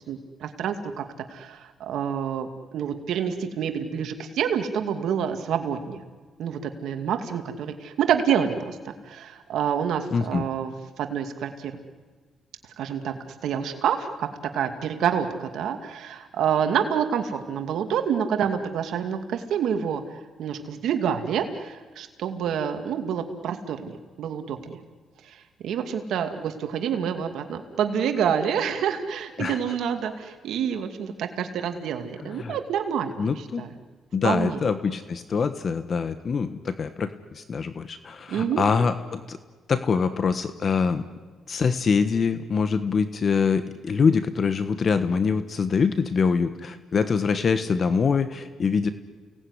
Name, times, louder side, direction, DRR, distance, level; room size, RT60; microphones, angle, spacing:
voice 1, 0.1-1.0 1.3-2.5 2.7-6.0 6.4-11.8 12.8-13.1 13.4-14.3 14.5-20.0 20.4-24.8 25.2-25.4 25.6-33.7 34.2-34.6 38.3-38.6, right 8 dB, 75° right, 6 dB, 2.5 m, -27 dB
voice 2, 10.1-10.4 29.4-29.6 32.2-32.6 33.2-33.6 34.1-39.4 39.7-41.0 41.5-48.9, left 5 dB, 45° left, 10 dB, 1.3 m, -24 dB
30.0 x 18.5 x 9.9 m, 1.4 s
cardioid pair, 90°, 0 cm